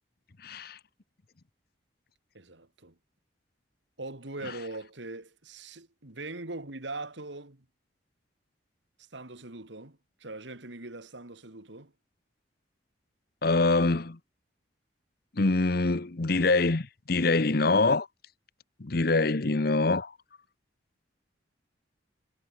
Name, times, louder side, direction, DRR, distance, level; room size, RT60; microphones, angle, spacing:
voice 1, 0.4-0.8 13.4-14.2 15.4-18.1 18.8-20.1, left 3 dB, 55° left, 0.9 m, -24 dB
voice 2, 2.3-2.9 4.0-7.6 9.1-11.9, right 2 dB, 70° right, 2.6 m, -41 dB
head